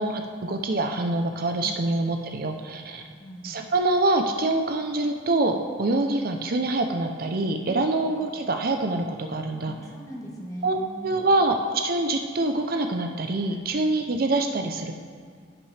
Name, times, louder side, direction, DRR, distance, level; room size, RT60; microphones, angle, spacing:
voice 1, 0.0-3.0 3.4-9.7 10.6-14.9, right 2 dB, 50° right, 5 dB, 0.6 m, -25 dB
voice 2, 3.1-3.6 6.3-6.4 7.7-8.0 9.7-11.2 13.5-13.8, equal, 20° left, -2 dB, 1.2 m, -41 dB
16.0 x 5.7 x 3.3 m, 2.1 s
head